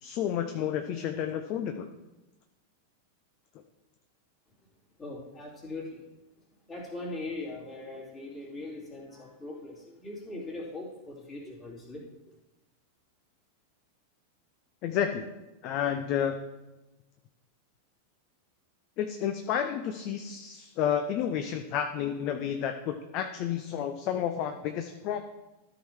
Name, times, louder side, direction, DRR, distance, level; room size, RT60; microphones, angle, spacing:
voice 1, 0.0-1.9 14.8-15.2 15.6-16.4 19.0-25.2, left 9 dB, 40° left, 8 dB, 0.6 m, -31 dB
voice 2, 5.0-6.0 6.7-12.0, left 2 dB, 25° left, -3 dB, 3.0 m, -40 dB
13.0 x 4.8 x 4.6 m, 1.1 s
figure-of-eight pair, 90°, 0 cm